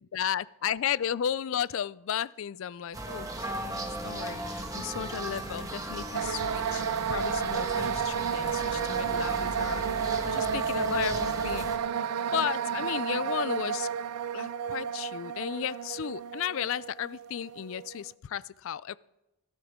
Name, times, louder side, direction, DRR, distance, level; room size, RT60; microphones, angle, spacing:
voice 1, 0.1-11.7 12.3-13.9 14.3-19.0, left 9 dB, 60° left, 20 dB, 0.3 m, -34 dB
sound 1, 2.9-11.8, right 1 dB, 15° right, 1.3 m, -37 dB
sound 2, 6.1-18.0, right 7 dB, 85° right, 0.4 m, -31 dB
16.5 x 12.5 x 3.6 m, 0.98 s
head